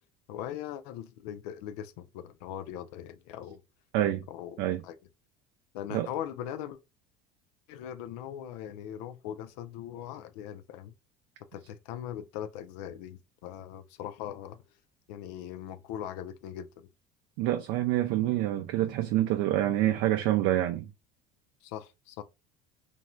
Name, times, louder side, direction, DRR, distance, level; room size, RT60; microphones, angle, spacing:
voice 1, 0.3-3.6 4.3-5.0 5.7-6.8 7.7-10.9 11.5-14.6 15.1-16.9 21.6-22.2, left 10 dB, 80° left, 0.5 m, -40 dB
voice 2, 17.4-20.9, right 13 dB, 70° right, 0.4 m, -27 dB
3.0 x 2.6 x 2.2 m
supercardioid pair, 100°, 20 cm